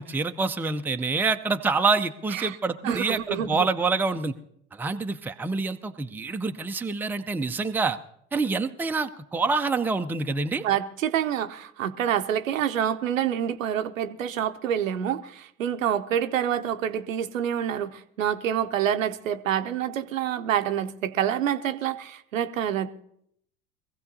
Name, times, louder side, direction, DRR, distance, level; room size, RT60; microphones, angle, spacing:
voice 1, 0.0-4.3 4.7-8.0 8.3-10.6, right 4 dB, 5° right, 0.5 m, -26 dB
voice 2, 2.8-3.7 10.6-22.9, right 9 dB, 80° right, 0.7 m, -27 dB
23.0 x 15.5 x 2.7 m
figure-of-eight pair, 70°, 39 cm